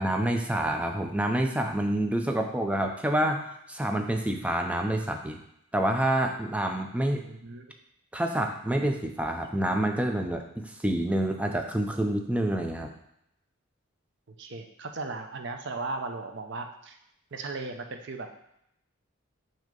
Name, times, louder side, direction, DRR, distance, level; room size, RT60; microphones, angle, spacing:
voice 1, 0.0-5.4 5.7-7.2 8.1-12.9, right 1 dB, 5° right, 4 dB, 0.4 m, -27 dB
voice 2, 7.1-7.6 14.4-17.0 17.3-18.4, right 3 dB, 55° right, 5 dB, 0.6 m, -37 dB
6.3 x 2.9 x 5.2 m, 0.79 s
head